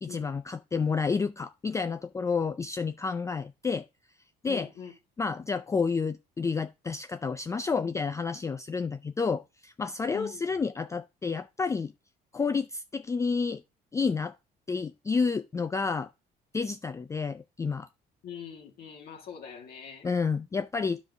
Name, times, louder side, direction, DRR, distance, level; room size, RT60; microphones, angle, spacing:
voice 1, 0.0-3.9 4.4-4.7 5.2-11.9 12.3-13.6 13.9-14.3 14.7-16.1 16.5-17.9 20.0-21.0, left 5 dB, 20° left, 0.3 m, -30 dB
voice 2, 4.5-4.9 10.1-10.5 18.2-20.1, left 7 dB, 65° left, 2.1 m, -43 dB
10.0 x 5.1 x 3.5 m
cardioid pair, 110°, 17 cm